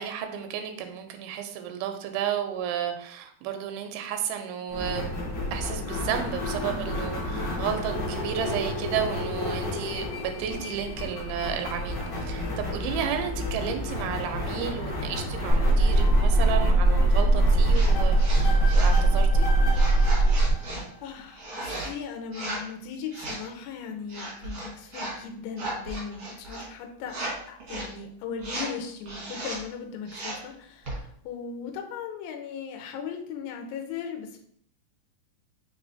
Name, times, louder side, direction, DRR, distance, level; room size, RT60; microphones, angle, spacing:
voice 1, 0.0-5.1 5.5-19.5, right 8 dB, 90° right, 6 dB, 2.4 m, -32 dB
sound 1, 4.7-21.2, left 1 dB, 45° left, 1.4 m, -32 dB
sound 2, 15.5-20.5, right 2 dB, 45° right, 0.9 m, -20 dB
sound 3, 17.7-17.9 18.2-19.0 19.7-20.8 21.4-21.9 22.3-22.7 23.1-23.5 24.1-25.2 25.5-26.7 27.1-27.3 27.6-27.9 28.4-28.7 29.1-29.6 30.1-30.5 30.8-31.0, right 2 dB, 60° right, 1.2 m, -36 dB
voice 2, 21.0-27.2 27.5-34.4, left 6 dB, 80° left, 3 dB, 2.2 m, -38 dB
5.4 x 3.1 x 2.6 m, 0.65 s
omnidirectional pair, 4.2 m